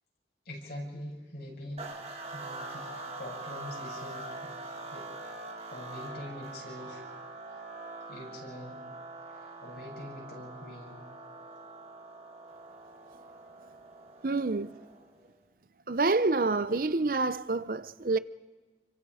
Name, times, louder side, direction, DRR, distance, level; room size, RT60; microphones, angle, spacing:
voice 1, 0.4-1.9 2.3-4.6 4.9-5.4 5.7-7.0 8.1-8.8 9.3-11.0, left 1 dB, 60° left, 7.5 m, -44 dB
sound 1, 1.8-15.2, right 2 dB, 35° right, 2.5 m, -44 dB
voice 2, 14.2-14.7 15.9-18.2, right 3 dB, 50° right, 0.7 m, -27 dB
30.0 x 25.0 x 5.0 m
head